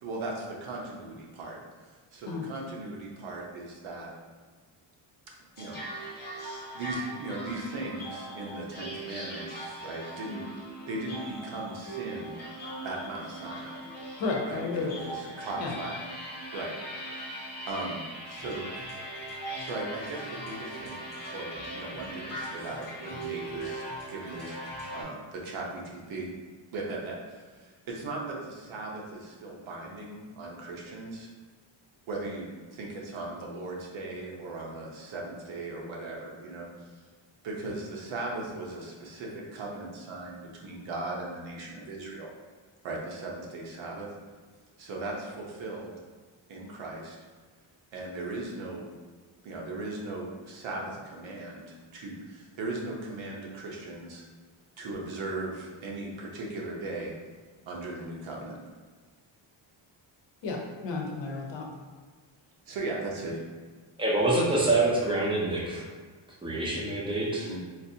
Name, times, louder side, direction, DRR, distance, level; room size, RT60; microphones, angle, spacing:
voice 1, 0.0-1.6 1.8-4.1 5.6-5.8 6.0-6.3 6.7-10.4 10.9-12.3 12.8-13.7 14.5-15.9 16.5-16.7 17.1-17.3 17.7-18.7 19.6-24.6 24.9-26.3 26.7-31.3 32.1-36.9 37.4-42.3 42.8-44.1 44.8-46.0 46.5-47.2 47.9-48.9 49.4-54.2 54.8-57.1 57.7-58.6 62.7-63.4 67.4-67.6, right 2 dB, 75° right, -2 dB, 0.9 m, -38 dB
sound 1, 5.6-25.0, right 1 dB, 20° left, 0.9 m, -40 dB
voice 2, 14.2-14.9 15.6-15.7 60.4-61.7, left 3 dB, 65° left, 0 dB, 0.7 m, -32 dB
voice 3, 64.0-65.8 66.4-67.5, right 2 dB, 10° right, -4 dB, 0.5 m, -26 dB
4.1 x 2.5 x 2.7 m, 1.5 s
cardioid pair, 180°, 47 cm